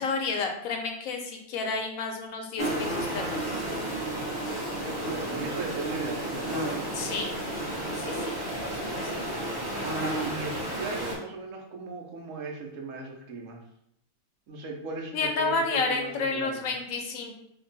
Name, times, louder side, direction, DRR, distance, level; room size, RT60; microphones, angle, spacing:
voice 1, 0.0-3.6 6.9-7.3 8.0-8.4 8.6-9.1 15.1-17.3, left 4 dB, 80° left, 3 dB, 1.0 m, -31 dB
sound 1, 2.6-11.2, right 1 dB, 20° right, 0.9 m, -32 dB
voice 2, 5.0-6.9 9.7-13.6 14.5-16.8, right 3 dB, 70° right, 2 dB, 1.0 m, -37 dB
2.9 x 2.2 x 3.9 m, 0.74 s
omnidirectional pair, 1.4 m